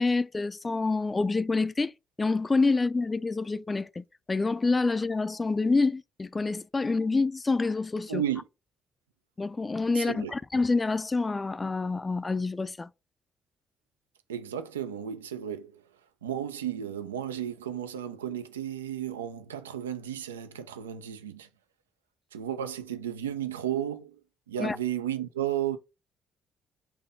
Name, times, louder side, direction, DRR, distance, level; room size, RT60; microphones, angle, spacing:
voice 1, 0.0-1.9 2.2-8.2 9.4-12.9 24.6-24.8, left 3 dB, 25° left, 0.3 m, -27 dB
voice 2, 8.1-8.4 9.9-10.3 14.3-15.8 16.2-21.5 22.3-24.2 24.5-25.8, right 10 dB, 85° right, 0.3 m, -33 dB
3.8 x 2.7 x 3.6 m
figure-of-eight pair, 45°, 0 cm